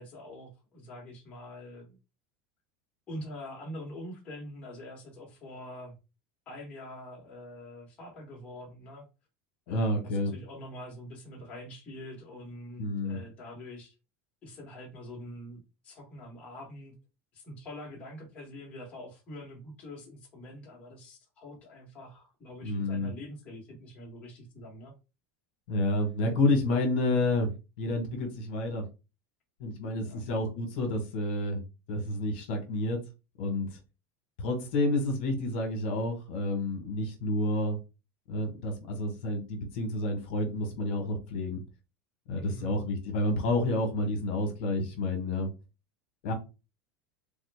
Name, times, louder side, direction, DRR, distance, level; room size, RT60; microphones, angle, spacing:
voice 1, 0.0-2.0 3.1-6.0 6.5-9.1 9.7-13.9 14.4-16.9 17.3-24.9 30.0-30.3 42.4-42.8, left 1 dB, 20° left, -2 dB, 1.0 m, -45 dB
voice 2, 9.7-10.3 12.8-13.2 22.6-23.1 25.7-27.5 27.8-28.8 29.6-31.6 31.9-33.0 33.4-33.7 34.4-37.8 38.3-41.6 42.3-45.5 46.2-46.3, left 2 dB, 60° left, 4 dB, 1.1 m, -29 dB
3.5 x 2.1 x 3.2 m, 0.28 s
supercardioid pair, 180°, 6 cm